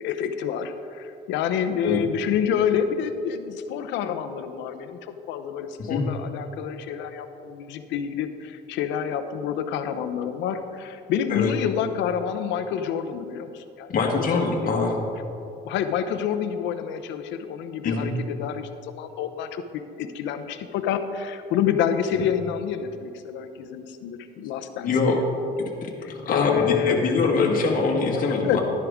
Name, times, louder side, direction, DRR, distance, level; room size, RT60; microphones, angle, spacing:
voice 1, 0.0-14.9 15.6-19.6 20.0-25.2 26.0-27.1 28.1-28.6, left 8 dB, 85° left, 9 dB, 0.8 m, -28 dB
voice 2, 13.9-15.0 17.8-18.1 24.8-25.2 25.6-28.6, left 4 dB, 50° left, 0 dB, 1.6 m, -24 dB
12.0 x 10.5 x 3.6 m, 2.6 s
cardioid pair, 125°, 18 cm